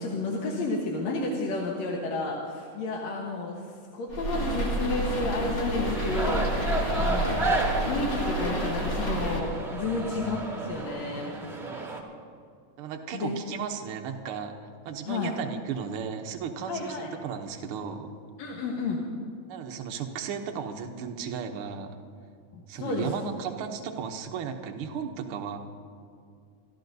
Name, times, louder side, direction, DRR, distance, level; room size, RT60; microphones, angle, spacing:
voice 1, 0.0-6.5 7.0-7.6 7.8-11.3 13.1-13.4 15.1-15.3 16.7-17.1 18.4-19.0 22.5-23.1, left 2 dB, 65° left, -2 dB, 2.3 m, -31 dB
sound 1, 4.1-9.4, equal, 40° left, 2.7 m, -29 dB
sound 2, 5.8-12.0, right 2 dB, 30° right, 0.8 m, -32 dB
voice 2, 6.7-7.3 9.8-10.4 12.8-18.1 19.5-22.0 22.7-25.6, right 6 dB, 90° right, 4 dB, 1.2 m, -35 dB
27.5 x 14.0 x 2.7 m, 2.3 s
omnidirectional pair, 3.5 m